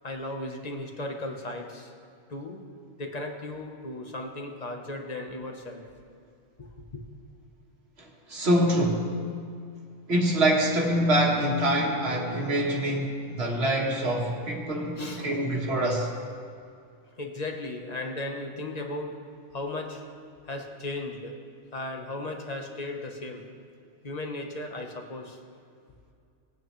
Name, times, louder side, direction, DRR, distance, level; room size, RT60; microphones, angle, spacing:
voice 1, 0.0-1.9 2.3-2.6 3.0-5.9 6.6-7.0 15.0-15.4 17.2-19.2 19.5-20.0 20.5-21.4 21.7-23.5 24.0-25.4, left 2 dB, 35° left, 2 dB, 1.1 m, -36 dB
voice 2, 8.0-9.1 10.1-16.1, right 1 dB, 65° right, 0 dB, 1.7 m, -25 dB
19.0 x 9.2 x 3.2 m, 2.4 s
omnidirectional pair, 1.2 m